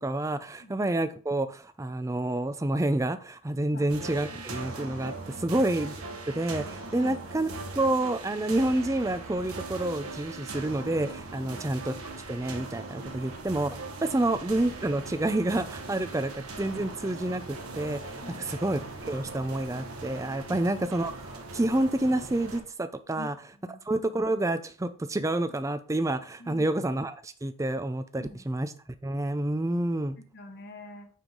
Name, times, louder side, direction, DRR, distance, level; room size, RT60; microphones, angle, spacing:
voice 1, 0.0-5.9 6.3-11.9 12.3-16.3 16.6-23.3 23.9-28.7 29.0-30.2, right 1 dB, 15° right, 11 dB, 0.4 m, -29 dB
sound 1, 3.9-22.6, right 3 dB, 90° right, 1.5 m, -40 dB
voice 2, 23.1-23.8 26.4-26.7 28.2-28.5 30.3-31.1, left 2 dB, 45° left, 5 dB, 1.1 m, -45 dB
9.0 x 4.7 x 3.8 m, 0.41 s
head